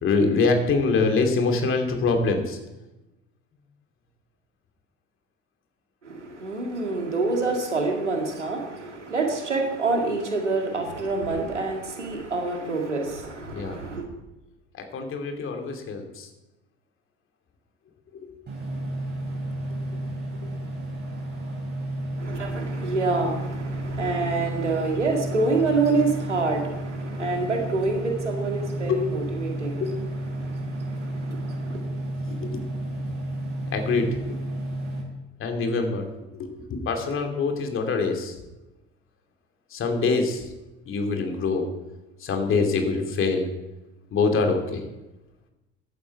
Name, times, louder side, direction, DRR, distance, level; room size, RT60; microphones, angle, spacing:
voice 1, 0.0-2.6 13.5-13.8 14.9-16.3 27.2-27.3 28.9-29.0 29.8-29.9 32.4-32.6 33.7-34.1 35.4-36.0 36.4-38.3 39.7-40.4 40.9-41.7 42.2-43.5 44.1-44.8, left 4 dB, 35° left, 4 dB, 2.7 m, -24 dB
voice 2, 6.1-14.0 22.2-29.9 31.3-31.4, right 3 dB, 80° right, 2 dB, 2.3 m, -26 dB
sound 1, 18.5-35.0, right 1 dB, 30° right, 5.7 m, -32 dB
15.0 x 11.5 x 4.6 m, 1.0 s
figure-of-eight pair, 65°, 35 cm